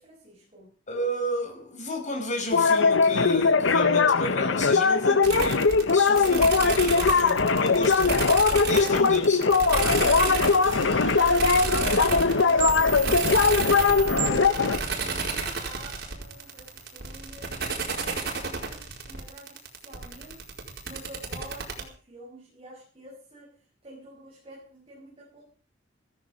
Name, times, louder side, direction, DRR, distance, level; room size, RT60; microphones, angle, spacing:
voice 1, 0.0-0.7 6.1-7.6 8.8-9.3 9.9-13.7 14.1-20.5 20.8-25.4, right 1 dB, 30° right, 6.0 m, -47 dB
voice 2, 0.9-5.6 5.9-8.4 8.6-9.4, left 1 dB, 40° left, 5.6 m, -32 dB
sound 1, 2.5-14.8, left 4 dB, 70° left, 0.9 m, -21 dB
sound 2, 5.2-21.8, right 4 dB, 60° right, 4.7 m, -31 dB
sound 3, 10.5-18.2, right 2 dB, 75° right, 2.4 m, -42 dB
15.5 x 14.5 x 5.2 m
head